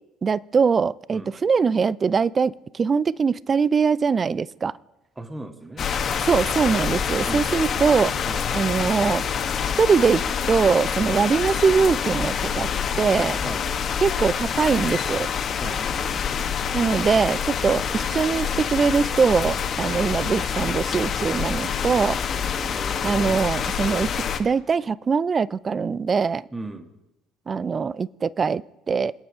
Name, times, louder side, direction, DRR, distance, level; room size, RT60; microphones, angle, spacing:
voice 1, 0.2-4.7 6.2-8.1 8.5-9.2 9.8-12.7 13.0-13.4 14.0-15.3 16.7-22.2 23.0-26.4 27.5-28.6 28.9-29.1, right 5 dB, 35° right, 21 dB, 0.5 m, -22 dB
voice 2, 5.2-5.9 7.3-7.5 8.2-8.4 11.0-11.2 13.4-13.7 15.6-15.8 22.3-23.4 26.5-26.9, right 2 dB, 15° right, 6 dB, 2.3 m, -37 dB
sound 1, 5.8-24.4, left 7 dB, 45° left, 1.5 m, -26 dB
26.5 x 10.0 x 5.0 m, 0.96 s
figure-of-eight pair, 55°, 0 cm